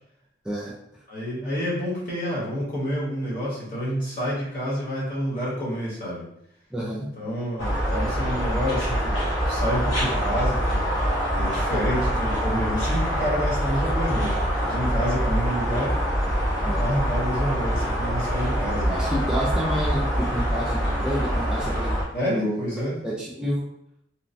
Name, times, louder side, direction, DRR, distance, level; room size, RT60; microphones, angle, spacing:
voice 1, 1.1-6.3 7.2-9.2 9.5-10.9 11.3-15.9 16.8-19.0 22.1-23.0, equal, 45° left, -6 dB, 1.1 m, -28 dB
voice 2, 6.7-7.1 16.6-16.8 18.9-22.0 22.3-22.7 23.0-23.7, equal, 5° right, -6 dB, 0.4 m, -29 dB
sound 1, 7.6-22.0, equal, 75° left, 1.2 m, -25 dB
3.0 x 2.1 x 2.6 m, 0.74 s
head